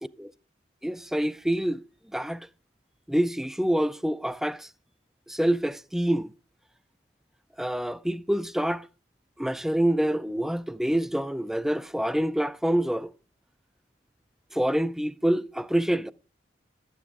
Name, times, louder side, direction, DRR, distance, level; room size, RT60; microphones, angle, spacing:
voice 1, 0.8-1.8 2.1-2.5 3.1-4.7 5.3-6.3 7.6-8.9 9.4-13.1 14.5-16.1, right 1 dB, ahead, 0.4 m, -26 dB
12.0 x 9.4 x 3.5 m
head